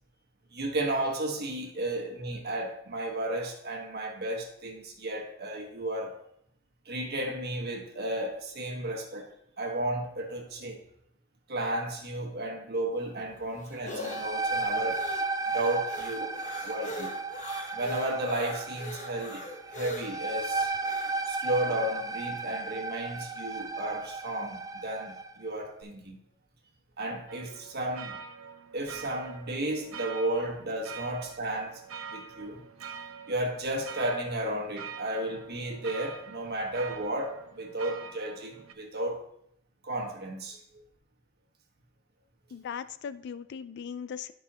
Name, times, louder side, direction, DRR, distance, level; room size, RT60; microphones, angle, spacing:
voice 1, 0.5-6.1 6.8-10.8 11.5-15.0 15.5-17.1 17.7-20.7 21.3-26.2 27.0-28.2 28.7-31.8 32.1-32.7 33.3-39.2 39.8-40.6, right 1 dB, 50° right, 1.4 m, -33 dB
sound 1, 13.0-21.2, left 2 dB, 40° left, 1.0 m, -42 dB
sound 2, 13.8-25.3, right 3 dB, 20° right, 0.4 m, -34 dB
sound 3, 27.3-38.7, right 6 dB, 80° right, 0.6 m, -45 dB
voice 2, 42.5-44.3, left 7 dB, 55° left, 0.3 m, -38 dB
11.0 x 5.5 x 2.9 m
head